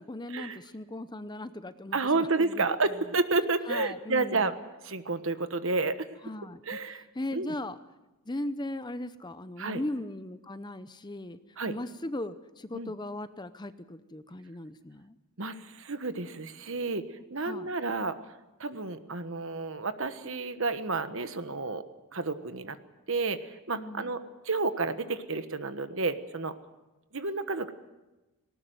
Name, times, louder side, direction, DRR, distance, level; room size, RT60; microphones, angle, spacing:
voice 1, 0.0-2.6 3.7-4.5 6.2-7.8 8.3-11.4 11.7-15.2 17.4-17.7 23.7-24.1, left 1 dB, 20° left, 12 dB, 0.7 m, -38 dB
voice 2, 1.9-4.5 4.8-6.1 6.6-7.0 7.3-7.5 9.6-9.8 11.6-11.7 12.7-12.9 15.4-18.2 18.6-21.8 22.1-22.8 23.1-26.5 27.1-27.7, right 3 dB, 60° right, 10 dB, 1.3 m, -30 dB
19.0 x 18.5 x 9.3 m, 1.1 s
head